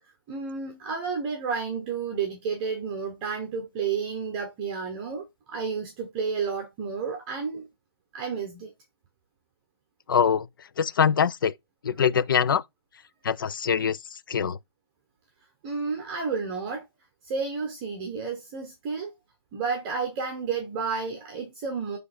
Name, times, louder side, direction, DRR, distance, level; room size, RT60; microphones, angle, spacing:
voice 1, 0.3-7.7 8.1-8.7 15.6-16.8 17.2-19.1 19.5-22.0, right 5 dB, 20° right, 1.2 m, -31 dB
voice 2, 10.1-10.5 10.8-11.5 11.8-12.6 13.2-14.6, left 7 dB, 55° left, 0.6 m, -23 dB
7.1 x 3.3 x 4.3 m
hypercardioid pair, 165°, 14 cm